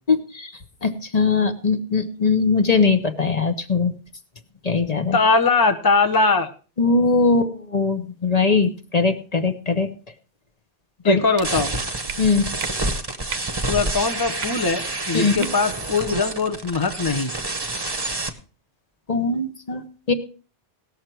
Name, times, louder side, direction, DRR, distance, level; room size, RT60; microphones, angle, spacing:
voice 1, 0.1-0.5 0.8-3.9 4.6-5.2 6.8-9.9 11.0-11.2 12.2-12.5 15.1-15.5 19.1-20.1, left 4 dB, 40° left, 7 dB, 0.9 m, -20 dB
voice 2, 5.1-6.5 11.0-11.7 13.7-17.3, left 4 dB, 25° left, 6 dB, 0.7 m, -21 dB
sound 1, 11.3-11.5 12.1-12.2 12.6-12.7 13.3-13.5 14.4-14.5 15.4-15.5 15.9-16.1, right 7 dB, 65° right, 1.0 m, -33 dB
sound 2, 11.4-18.3, right 2 dB, 25° right, 1.0 m, -28 dB
18.0 x 6.6 x 4.5 m, 0.37 s
omnidirectional pair, 1.2 m